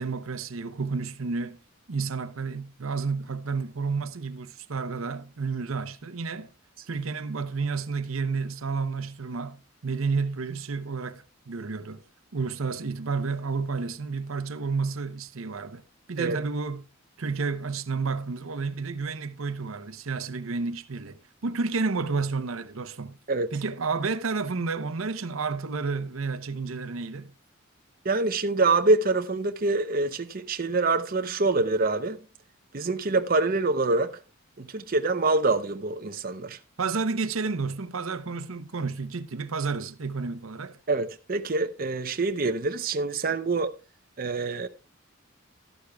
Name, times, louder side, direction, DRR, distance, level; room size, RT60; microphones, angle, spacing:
voice 1, 0.0-1.6 1.9-6.5 6.9-12.0 12.3-15.8 16.1-16.9 17.2-23.2 23.5-27.3 36.8-40.8, right 4 dB, 85° right, 0.8 m, -31 dB
voice 2, 28.0-32.2 32.7-34.2 34.6-36.6 40.9-43.7 44.2-44.7, right 3 dB, 45° right, 0.7 m, -25 dB
13.0 x 11.5 x 2.3 m
head